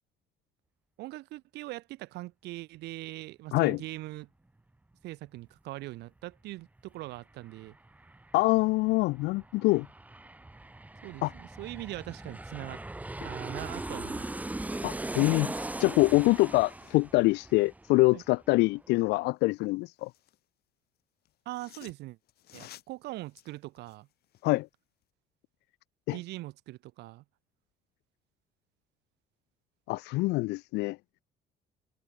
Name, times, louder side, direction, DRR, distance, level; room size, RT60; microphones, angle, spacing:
voice 1, 1.0-4.3 5.0-7.7 11.0-12.8 13.2-14.3 18.1-18.2 21.5-22.2 22.5-24.1 26.1-27.2, right 18 dB, 85° right, 2.7 m, -41 dB
Aircraft, 6.8-6.9 7.2-18.5 18.8-18.9, right 2 dB, 10° right, 1.2 m, -40 dB
voice 2, 8.3-9.9 11.2-11.3 14.8-15.5 15.8-20.1 24.4-24.7 26.1-26.2 29.9-31.0, left 22 dB, 85° left, 0.4 m, -25 dB
sound 1, 15.0-17.2 19.4-20.4 21.2-24.6 25.0-25.1, left 13 dB, 70° left, 5.8 m, -57 dB
open air
cardioid pair, 110°, 17 cm